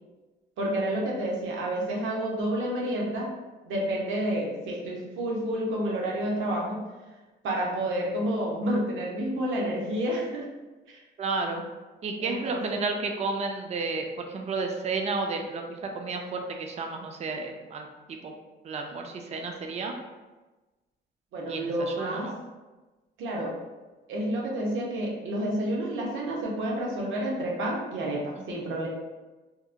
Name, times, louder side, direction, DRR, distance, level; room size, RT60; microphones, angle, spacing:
voice 1, 0.6-3.3 3.7-6.8 7.4-10.5 10.9-11.0 12.2-12.8 21.3-22.3 23.2-23.6 24.1-28.9, right 1 dB, 75° right, -2 dB, 0.7 m, -29 dB
voice 2, 11.2-11.6 12.0-18.3 18.6-20.0 21.5-22.4 28.4-28.7, right 3 dB, 35° right, 3 dB, 0.4 m, -32 dB
2.8 x 2.0 x 2.4 m, 1.2 s
cardioid pair, 90°, 20 cm